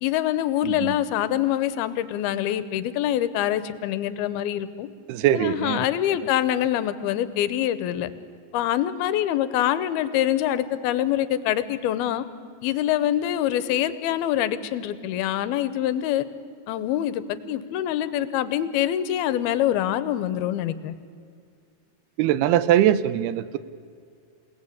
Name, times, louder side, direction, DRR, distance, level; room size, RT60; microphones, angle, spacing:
voice 1, 0.0-4.9 5.3-8.1 8.5-12.2 12.6-16.3 16.7-20.9, left 12 dB, 80° left, 14 dB, 2.9 m, -25 dB
voice 2, 0.6-1.0 5.1-5.9 22.2-23.6, right 11 dB, 90° right, 15 dB, 2.9 m, -21 dB
28.0 x 18.0 x 8.5 m, 2.3 s
omnidirectional pair, 4.4 m